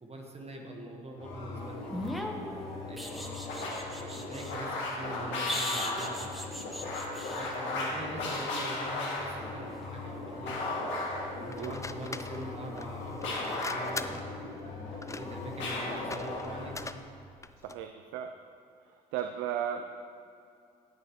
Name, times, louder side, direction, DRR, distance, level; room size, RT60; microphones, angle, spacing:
voice 1, 0.0-2.6 2.9-6.8 7.2-10.6 11.0-14.3 14.6-16.8, right 1 dB, 30° right, 1 dB, 1.5 m, -44 dB
sound 1, 1.1-16.8, left 2 dB, 70° left, 2.4 m, -36 dB
sound 2, 1.9-4.6 5.5-7.5 10.2-10.3, equal, ahead, 1.2 m, -38 dB
sound 3, 11.5-17.9, left 3 dB, 15° left, 0.5 m, -43 dB
voice 2, 17.6-18.3 18.8-19.9, right 9 dB, 80° right, 6 dB, 0.5 m, -36 dB
17.0 x 6.5 x 3.1 m, 2.4 s
hypercardioid pair, 50°, 20 cm